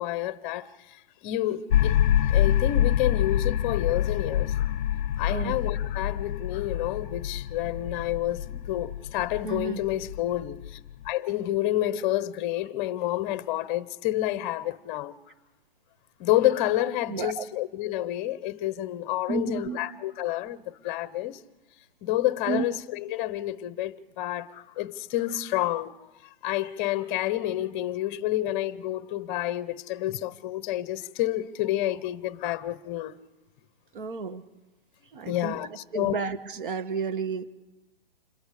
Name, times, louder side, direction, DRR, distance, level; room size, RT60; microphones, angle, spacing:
voice 1, 0.0-2.0 2.3-4.7 5.2-10.8 11.0-15.2 16.2-21.4 22.0-26.0 26.4-33.1 35.3-36.2, left 14 dB, 20° left, 0.8 m, -29 dB
sound 1, 1.7-11.1, left 11 dB, 55° left, 0.6 m, -26 dB
voice 2, 9.4-9.8 17.1-17.5 19.3-19.8 22.5-22.6 33.9-34.4 35.1-35.6 35.9-37.4, right 5 dB, 60° right, 1.8 m, -31 dB
27.0 x 22.0 x 5.0 m
hypercardioid pair, 150°, 30 cm